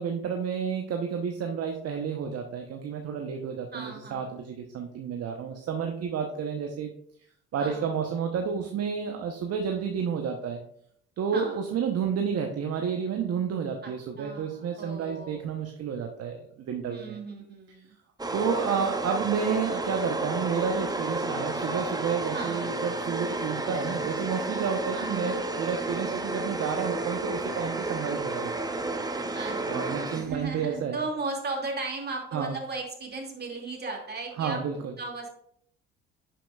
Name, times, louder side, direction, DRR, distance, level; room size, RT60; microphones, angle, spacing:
voice 1, 0.0-6.9 7.5-10.6 11.2-17.2 18.3-28.7 29.7-31.0 32.3-32.6 34.4-34.9, right 6 dB, 50° right, 4 dB, 1.0 m, -30 dB
voice 2, 3.7-4.3 7.6-7.9 11.3-11.6 13.8-15.5 16.9-17.9 22.3-22.8 24.9-25.4 29.3-35.3, right 3 dB, 30° right, 1 dB, 2.4 m, -36 dB
sound 1, 18.2-30.6, right 2 dB, 10° right, 0.9 m, -32 dB
10.5 x 5.8 x 2.4 m, 0.68 s
hypercardioid pair, 60°, 31 cm